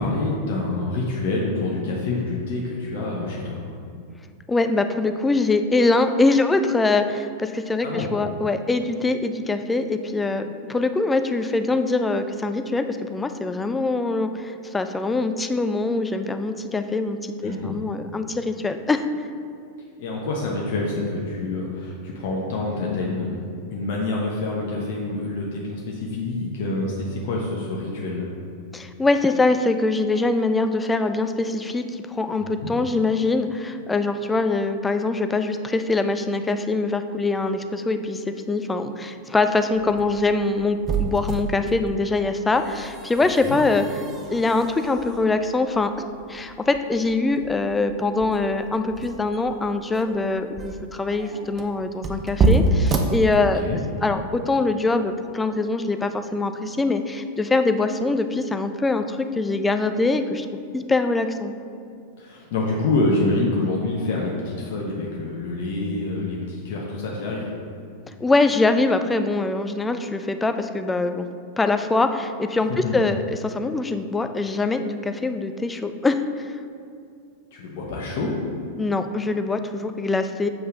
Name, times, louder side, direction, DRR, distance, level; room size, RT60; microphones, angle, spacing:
voice 1, 0.0-3.6 7.8-8.1 17.4-17.8 20.0-23.4 23.7-28.3 32.4-32.7 43.5-43.6 53.5-53.8 62.2-67.5 72.8-73.0 77.5-78.3, left 2 dB, 50° left, -3 dB, 1.0 m, -26 dB
voice 2, 4.5-19.0 28.7-44.0 44.3-53.6 54.0-60.5 60.7-61.5 68.2-71.3 71.6-76.5 78.8-80.5, left 3 dB, 10° left, 8 dB, 0.4 m, -23 dB
sound 1, 39.7-53.9, right 3 dB, 30° right, 0.7 m, -28 dB
7.4 x 5.5 x 3.8 m, 2.4 s
figure-of-eight pair, 90°, 0 cm